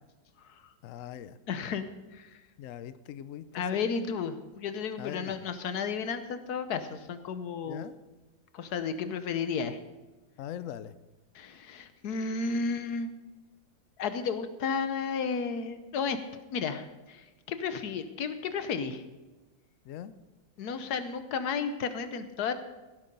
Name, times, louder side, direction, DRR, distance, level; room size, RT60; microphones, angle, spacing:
voice 1, 0.8-1.4 2.6-4.0 5.0-5.5 7.7-8.0 10.4-11.0 19.8-20.1, left 10 dB, 90° left, 14 dB, 0.7 m, -41 dB
voice 2, 1.5-1.8 2.1-2.3 3.5-7.8 8.5-9.8 11.3-13.1 14.0-16.2 16.5-19.0 20.6-22.5, left 5 dB, 60° left, 10 dB, 1.3 m, -33 dB
16.5 x 8.6 x 5.3 m, 1.1 s
omnidirectional pair, 2.1 m